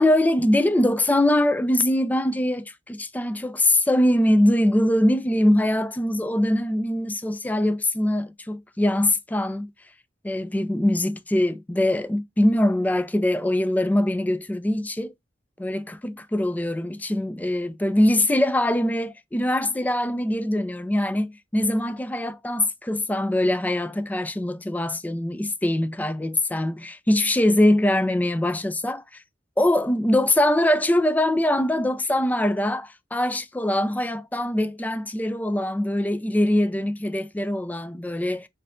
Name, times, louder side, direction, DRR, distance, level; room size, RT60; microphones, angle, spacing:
voice 1, 0.0-9.7 10.2-15.1 15.6-29.0 29.6-38.5, left 1 dB, 10° left, 0.3 m, -22 dB
4.5 x 2.6 x 3.5 m
head